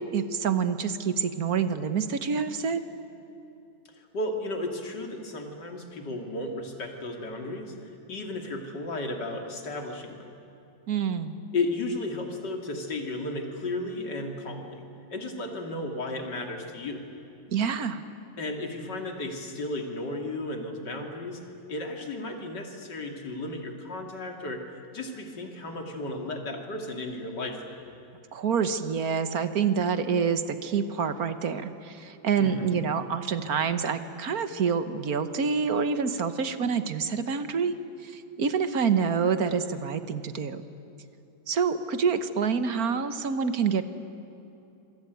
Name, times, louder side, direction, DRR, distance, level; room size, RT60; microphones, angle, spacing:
voice 1, 0.0-2.8 10.9-11.4 17.5-18.0 28.3-37.7 38.0-40.6 41.5-43.9, right 6 dB, 50° right, 11 dB, 1.5 m, -27 dB
voice 2, 4.0-10.3 11.5-14.8 15.1-17.0 18.4-21.4 21.7-24.6 24.9-27.8 32.4-32.8, left 2 dB, 60° left, 3 dB, 3.2 m, -34 dB
26.5 x 23.0 x 9.4 m, 2.8 s
omnidirectional pair, 2.1 m